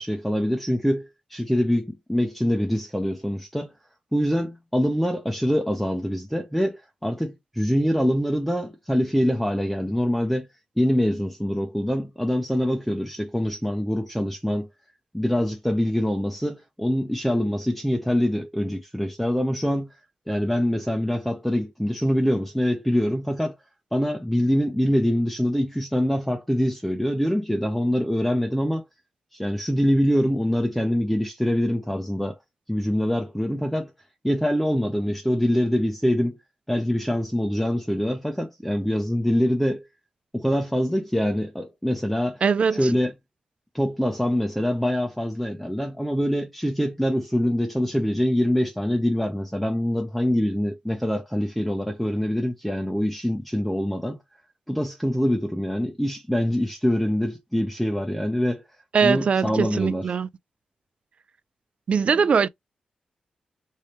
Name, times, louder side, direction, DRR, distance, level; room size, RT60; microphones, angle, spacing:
voice 1, 0.0-3.7 4.1-10.5 10.8-14.7 15.1-19.9 20.3-23.6 23.9-28.8 29.3-32.3 32.7-33.9 34.2-36.4 36.7-39.9 40.3-42.4 42.8-43.1 43.7-54.2 54.7-58.6 59.0-60.0, equal, ahead, 0.6 m, -24 dB
voice 2, 42.4-42.9 58.9-60.3 61.9-62.5, right 6 dB, 50° right, 0.3 m, -21 dB
3.3 x 3.1 x 2.8 m
wide cardioid pair, 125°, 3 cm